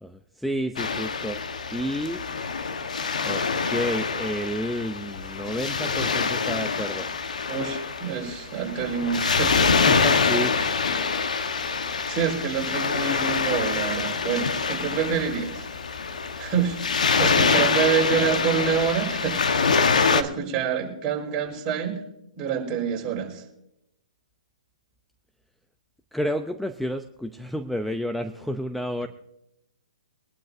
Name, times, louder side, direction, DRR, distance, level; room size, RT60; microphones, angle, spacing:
voice 1, 0.0-1.4 1.7-2.2 3.2-3.4 3.7-7.1 9.7-10.6 26.1-29.1, equal, ahead, 8 dB, 0.7 m, -30 dB
Waves surf, 0.8-20.2, left 5 dB, 75° left, 1.3 m, -25 dB
voice 2, 7.5-9.6 12.1-15.6 16.4-19.4 20.1-22.0 22.3-23.4, right 7 dB, 25° right, 1 dB, 4.8 m, -27 dB
24.0 x 11.5 x 2.7 m, 0.83 s
hypercardioid pair, 130°, 4 cm